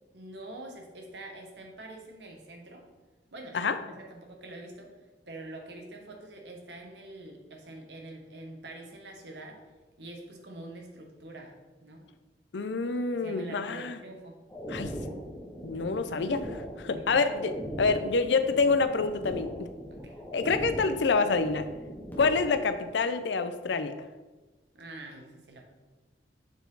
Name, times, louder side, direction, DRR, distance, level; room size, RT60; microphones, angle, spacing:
voice 1, 0.1-2.8 3.3-4.9 5.3-9.6 10.0-11.5 11.8-12.0 13.1-14.4 14.8-15.1 16.8-17.5 19.9-20.2 24.7-25.6, right 2 dB, 75° right, 1 dB, 1.3 m, -45 dB
voice 2, 12.5-14.0 14.7-15.0 15.6-17.5 17.8-19.7 20.3-21.7 22.2-23.9, left 4 dB, 80° left, 10 dB, 0.5 m, -27 dB
sound 1, 14.5-22.6, equal, 10° left, 1.3 m, -40 dB
6.8 x 4.5 x 3.9 m, 1.2 s
head